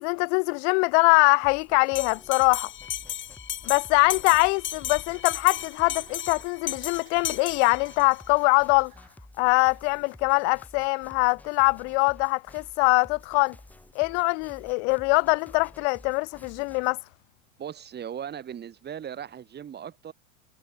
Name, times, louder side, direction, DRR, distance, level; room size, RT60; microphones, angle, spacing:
voice 1, 0.0-2.7 3.7-8.9 9.4-13.6 14.0-17.0, left 33 dB, 55° left, 0.7 m, -23 dB
sound 1, 1.4-16.9, left 1 dB, 5° left, 3.6 m, -51 dB
Bell, 1.9-8.2, left 11 dB, 30° left, 1.3 m, -35 dB
sound 2, 4.0-10.2, right 23 dB, 50° right, 6.1 m, -58 dB
voice 2, 17.6-20.1, right 9 dB, 25° right, 1.8 m, -38 dB
hypercardioid pair, 115°, 41 cm